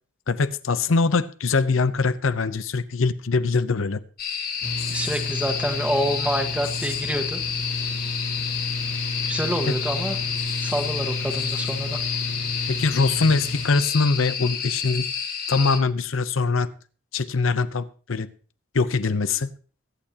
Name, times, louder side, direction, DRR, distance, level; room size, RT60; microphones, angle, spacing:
voice 1, 0.3-4.0 9.7-9.8 12.7-15.1 15.5-16.7 17.1-18.3 18.7-19.5, left 4 dB, 90° left, 13 dB, 0.7 m, -23 dB
sound 1, 4.2-15.8, left 7 dB, 45° left, 1.7 m, -30 dB
Mechanical fan, 4.6-13.7, left 2 dB, 70° left, 2.4 m, -31 dB
voice 2, 4.9-7.4 9.3-10.2 10.6-12.0, equal, 5° right, 5 dB, 1.4 m, -27 dB
22.5 x 8.8 x 2.9 m, 0.41 s
head